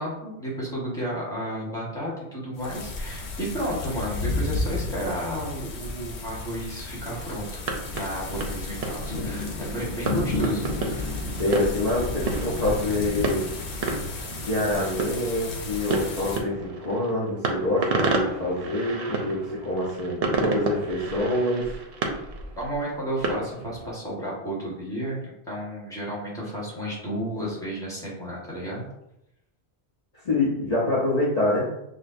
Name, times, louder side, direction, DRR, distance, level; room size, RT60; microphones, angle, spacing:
voice 1, 0.0-7.6 7.9-11.2 22.5-28.9, right 1 dB, 5° left, -6 dB, 1.3 m, -32 dB
sound 1, 2.6-16.4, left 2 dB, 75° left, 1.0 m, -32 dB
sound 2, 7.5-23.9, right 3 dB, 65° right, 0.8 m, -32 dB
voice 2, 11.4-13.5 14.4-21.7 27.4-27.5 30.2-31.7, left 2 dB, 40° left, -7 dB, 0.8 m, -26 dB
6.2 x 2.2 x 2.6 m, 0.84 s
omnidirectional pair, 1.1 m